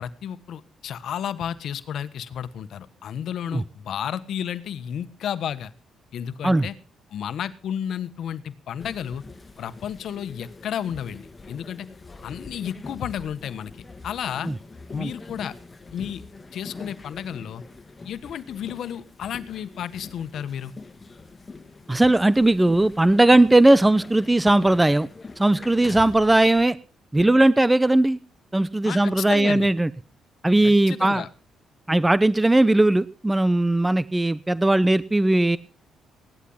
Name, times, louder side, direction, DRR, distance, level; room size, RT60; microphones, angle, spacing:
voice 1, 0.0-5.7 6.1-6.8 7.1-9.2 9.6-11.9 12.2-13.7 14.0-14.5 14.9-15.6 15.9-16.2 16.5-17.6 18.0-20.7 25.9-26.1 28.8-29.7 30.6-31.3, left 9 dB, 70° left, 13 dB, 1.4 m, -32 dB
sound 1, 8.8-26.6, left 3 dB, 25° left, 2.1 m, -43 dB
voice 2, 21.9-25.1 25.4-26.8 27.1-28.2 28.5-29.9 30.4-31.2 31.9-35.6, right 2 dB, 10° right, 17 dB, 0.7 m, -18 dB
17.5 x 11.5 x 5.6 m, 0.37 s
cardioid pair, 90°, 0 cm